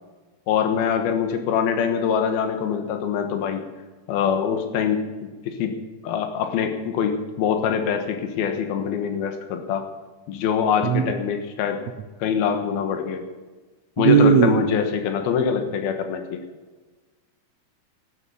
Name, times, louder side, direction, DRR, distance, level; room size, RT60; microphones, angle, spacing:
voice 1, 0.5-3.6 4.1-5.0 5.4-5.7 6.0-9.8 10.3-11.8 12.2-13.2 14.0-16.4, left 7 dB, 85° left, 6 dB, 3.3 m, -24 dB
voice 2, 14.0-14.6, right 8 dB, 75° right, 6 dB, 1.7 m, -16 dB
13.0 x 11.5 x 7.0 m, 1.3 s
omnidirectional pair, 4.2 m